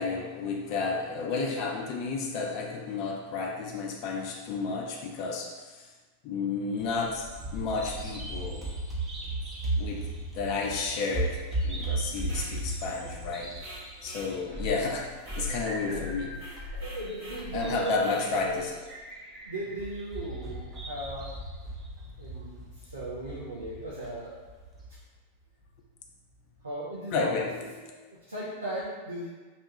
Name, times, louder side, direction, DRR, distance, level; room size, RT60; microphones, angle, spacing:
voice 1, 0.0-5.9 6.2-8.7 9.8-10.1 10.3-13.5 14.0-16.3 17.5-18.7 27.1-27.7, left 4 dB, 40° left, 0 dB, 0.3 m, -32 dB
Bird vocalization bird call bird song, 6.8-24.9, right 2 dB, 20° right, 0.6 m, -36 dB
sound 1, 12.2-12.5 13.6-14.3 15.2-15.5 16.3-17.5 18.0-18.3, right 1 dB, 45° right, 0.9 m, -46 dB
voice 2, 16.7-18.1 18.4-18.7 19.4-21.3 22.2-24.4 26.6-27.5 27.9-29.3, right 1 dB, 75° right, -7 dB, 0.4 m, -37 dB
2.7 x 2.2 x 2.8 m, 1.3 s
figure-of-eight pair, 90°, 0 cm